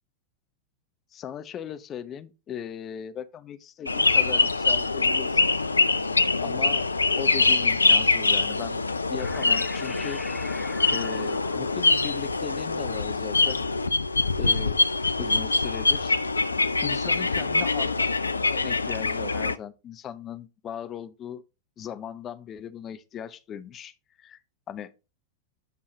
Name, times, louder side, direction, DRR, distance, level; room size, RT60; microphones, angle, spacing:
voice 1, 1.1-5.5 6.4-6.9 7.2-8.8 9.1-10.2 10.9-13.7 14.4-14.8 15.2-16.2 16.8-18.1 18.5-21.4 21.8-24.4 24.7-24.9, left 9 dB, 30° left, 0.6 m, -38 dB
sound 1, 3.9-19.6, left 3 dB, 80° left, 0.4 m, -24 dB
sound 2, 9.2-14.0, left 2 dB, 10° left, 1.8 m, -44 dB
8.1 x 5.4 x 3.2 m
figure-of-eight pair, 90°, 0 cm